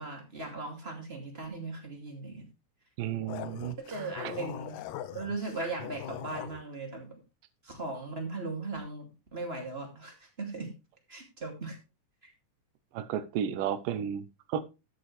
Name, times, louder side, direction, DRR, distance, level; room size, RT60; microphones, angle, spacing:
voice 1, 0.0-2.5 3.8-4.8 5.1-7.2 7.6-10.7 11.1-11.8 12.2-12.3, right 3 dB, 20° right, 2.3 m, -38 dB
voice 2, 3.0-3.8 4.2-4.3 12.9-14.6, right 9 dB, 80° right, 2.5 m, -33 dB
sound 1, 3.3-6.6, left 12 dB, 75° left, 1.9 m, -41 dB
13.0 x 7.9 x 3.2 m
omnidirectional pair, 3.8 m